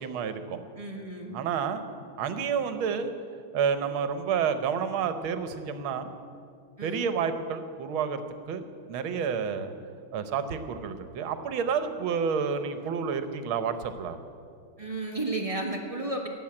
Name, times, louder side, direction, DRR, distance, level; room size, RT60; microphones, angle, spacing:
voice 1, 0.0-0.6 1.3-1.8 2.2-3.1 3.5-6.1 6.8-8.2 8.5-9.7 10.1-14.2, right 6 dB, 85° right, 10 dB, 1.7 m, -29 dB
voice 2, 0.7-1.4 6.8-7.1 14.8-16.3, right 2 dB, 20° right, 1 dB, 1.2 m, -33 dB
16.5 x 7.4 x 8.7 m, 2.3 s
omnidirectional pair, 2.2 m